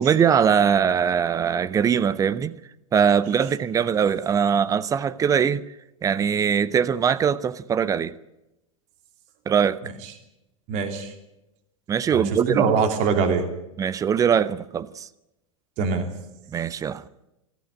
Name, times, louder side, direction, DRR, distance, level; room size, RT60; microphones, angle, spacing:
voice 1, 0.0-2.6 2.9-5.6 6.0-8.1 9.5-9.8 11.9-12.7 13.8-15.1 16.5-17.0, right 7 dB, 20° right, 0.7 m, -21 dB
voice 2, 10.7-11.1 12.1-13.5 15.8-16.1, right 5 dB, 40° right, 2.9 m, -23 dB
20.5 x 14.5 x 9.9 m
figure-of-eight pair, 90°, 17 cm